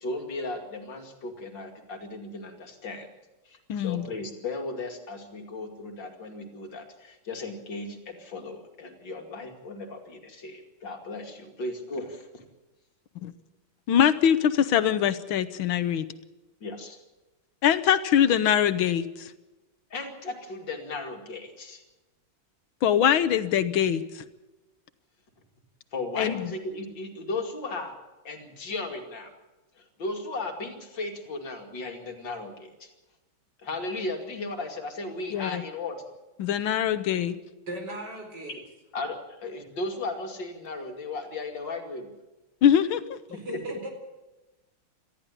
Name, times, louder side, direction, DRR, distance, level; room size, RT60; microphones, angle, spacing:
voice 1, 0.0-3.1 3.5-12.4 16.6-17.0 19.9-21.8 25.9-27.9 28.2-29.3 29.8-32.9 33.6-36.0 38.9-42.1 43.5-43.8, left 2 dB, 65° left, 3.0 m, -36 dB
voice 2, 3.7-4.1 13.2-13.3 13.9-16.1 17.6-19.3 22.8-24.2 26.2-26.5 35.3-35.6 36.4-37.4 42.6-43.0, left 9 dB, 85° left, 1.7 m, -23 dB
voice 3, 37.7-38.6 43.3-43.9, right 2 dB, 55° right, 4.8 m, -37 dB
19.0 x 14.0 x 9.9 m
omnidirectional pair, 2.2 m